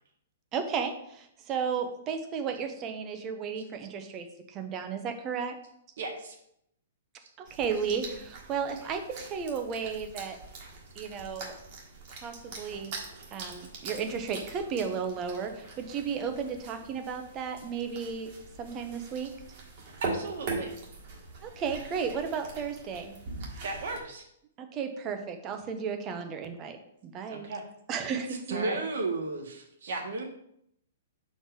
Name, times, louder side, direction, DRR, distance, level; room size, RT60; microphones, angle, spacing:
voice 1, 0.5-5.6 7.4-10.4 10.9-11.5 12.1-12.9 13.3-18.3 18.6-19.3 21.4-23.1 24.6-26.8 27.0-27.5 27.9-28.6, right 6 dB, 20° right, 6 dB, 0.7 m, -34 dB
voice 2, 6.0-6.3 20.0-20.7 23.6-24.2 27.3-27.6 28.5-28.8 29.9-30.0, right 3 dB, 55° right, 2 dB, 1.6 m, -36 dB
sound 1, 7.4-24.0, right 3 dB, 35° right, 1.5 m, -42 dB
voice 3, 28.5-30.2, right 3 dB, 70° right, 3 dB, 1.5 m, -33 dB
6.5 x 4.6 x 4.7 m, 0.73 s
hypercardioid pair, 170°, 0 cm